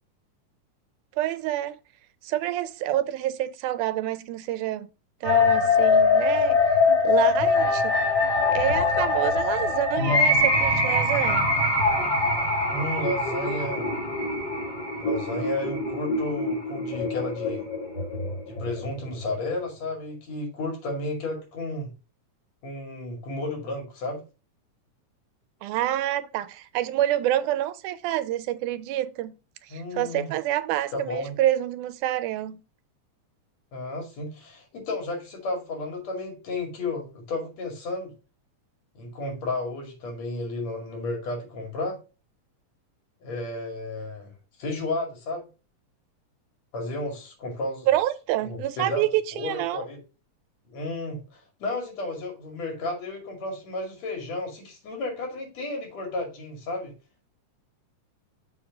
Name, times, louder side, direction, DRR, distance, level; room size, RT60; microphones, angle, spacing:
voice 1, 1.2-1.8 2.2-4.9 5.2-6.6 7.0-8.0 8.5-11.5 25.6-29.3 29.7-32.6 47.9-49.9, right 13 dB, 85° right, 2.1 m, -27 dB
sound 1, 5.2-19.2, left 3 dB, 35° left, 2.7 m, -23 dB
voice 2, 12.7-13.9 15.0-17.6 18.5-21.9 22.6-24.2 29.7-30.3 30.9-31.3 33.7-38.1 38.9-42.0 43.2-44.3 44.6-45.5 46.7-47.9 48.4-49.1 49.3-50.0 50.7-56.9, left 2 dB, 60° left, 3.4 m, -32 dB
7.2 x 3.3 x 5.1 m
omnidirectional pair, 3.5 m